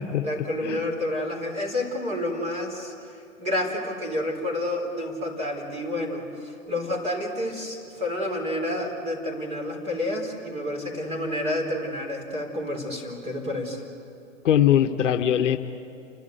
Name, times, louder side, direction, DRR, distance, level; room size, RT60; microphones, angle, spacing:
voice 1, 0.2-2.9 3.4-13.8, left 1 dB, 15° right, 1 dB, 4.0 m, -29 dB
voice 2, 14.4-15.6, left 10 dB, 60° left, 7 dB, 1.1 m, -21 dB
30.0 x 12.0 x 8.0 m, 2.6 s
hypercardioid pair, 120°, 41 cm